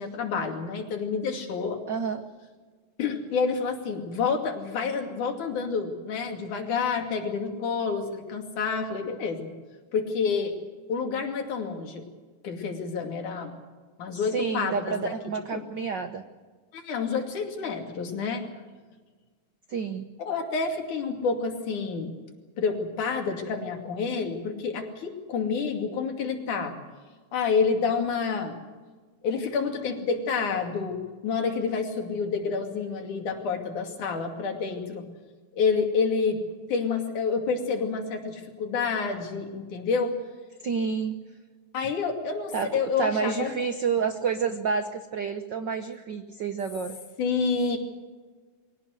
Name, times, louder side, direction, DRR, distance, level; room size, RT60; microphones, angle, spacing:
voice 1, 0.0-1.8 3.0-9.5 9.9-10.6 10.9-12.0 12.4-13.5 14.0-15.6 16.7-18.4 20.2-22.1 22.6-26.8 27.3-28.6 29.2-35.1 35.5-36.4 36.7-40.2 41.7-43.6 47.2-47.8, left 5 dB, 85° left, 3 dB, 4.0 m, -28 dB
voice 2, 1.9-2.2 14.1-16.2 19.7-20.0 40.6-41.2 42.5-42.7 43.0-47.0, right 6 dB, 75° right, 8 dB, 1.0 m, -29 dB
23.0 x 17.5 x 8.0 m, 1.4 s
omnidirectional pair, 3.4 m